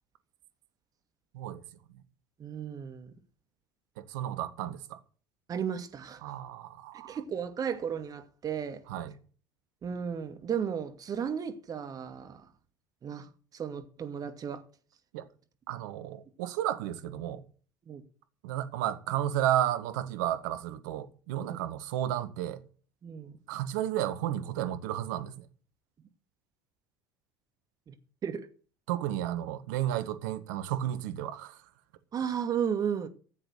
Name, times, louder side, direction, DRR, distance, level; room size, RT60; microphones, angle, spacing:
voice 1, 2.4-3.1 5.5-6.3 7.0-8.8 9.8-12.5 13.0-14.6 17.9-18.0 21.5-21.6 23.0-23.4 27.9-28.0 28.2-28.5 32.1-33.1, right 7 dB, 35° right, 2.4 m, -34 dB
voice 2, 4.0-5.0 6.2-7.2 8.9-9.1 15.1-15.3 15.7-17.4 18.4-22.6 23.5-25.5 28.9-31.6, right 12 dB, 60° right, 1.7 m, -32 dB
15.0 x 7.8 x 8.2 m
figure-of-eight pair, 65°, 11 cm